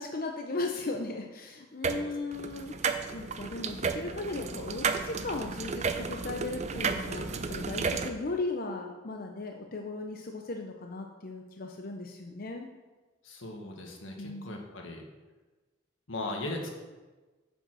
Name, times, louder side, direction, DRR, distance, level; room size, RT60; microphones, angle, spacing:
voice 1, 0.0-12.7 14.2-14.7, left 3 dB, 50° left, 3 dB, 0.7 m, -37 dB
sound 1, 1.8-2.0 2.3-8.1, right 5 dB, 35° right, 0.5 m, -33 dB
voice 2, 13.2-15.1 16.1-16.7, left 2 dB, 85° left, 1 dB, 1.6 m, -38 dB
9.0 x 5.5 x 6.1 m, 1.3 s
head